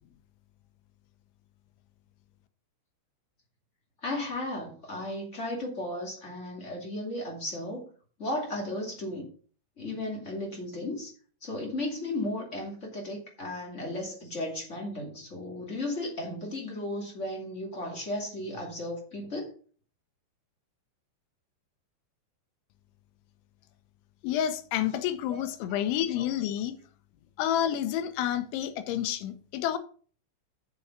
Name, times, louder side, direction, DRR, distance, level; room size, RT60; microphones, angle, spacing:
voice 1, 4.0-7.9 8.2-9.3 9.8-11.1 11.4-19.5 25.3-25.8 26.2-26.3, left 1 dB, 25° left, 1.5 m, -35 dB
voice 2, 24.2-26.7 27.4-29.8, left 10 dB, 85° left, 3.3 m, -29 dB
7.5 x 7.0 x 5.8 m
omnidirectional pair, 5.2 m